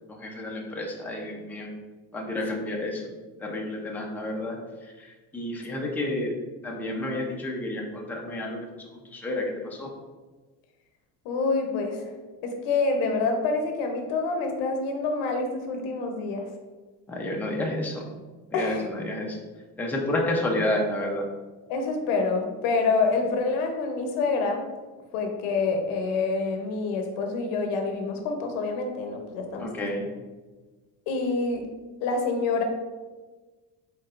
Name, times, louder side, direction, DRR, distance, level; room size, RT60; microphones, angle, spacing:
voice 1, 0.1-1.7 2.1-3.0 3.4-6.4 6.6-8.6 9.0-9.9 17.1-18.1 18.5-19.4 19.8-21.2 29.6-30.1, left 1 dB, 5° left, -1 dB, 0.5 m, -30 dB
voice 2, 11.2-12.1 12.4-16.5 18.5-18.9 21.7-24.6 25.1-29.7 31.1-31.6 32.0-32.6, left 4 dB, 90° left, 4 dB, 0.9 m, -27 dB
4.6 x 4.2 x 2.5 m, 1.3 s
cardioid pair, 130°, 39 cm